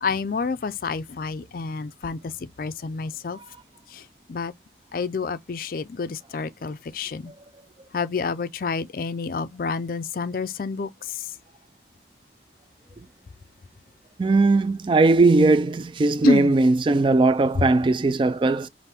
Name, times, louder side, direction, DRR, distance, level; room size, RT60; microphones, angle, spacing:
voice 1, 0.0-2.3 2.6-3.4 4.3-4.5 4.9-7.3 7.9-10.9 16.2-16.5, left 4 dB, 50° left, 0.4 m, -28 dB
voice 2, 14.2-18.7, right 3 dB, 30° right, 0.3 m, -19 dB
5.8 x 2.6 x 3.4 m
head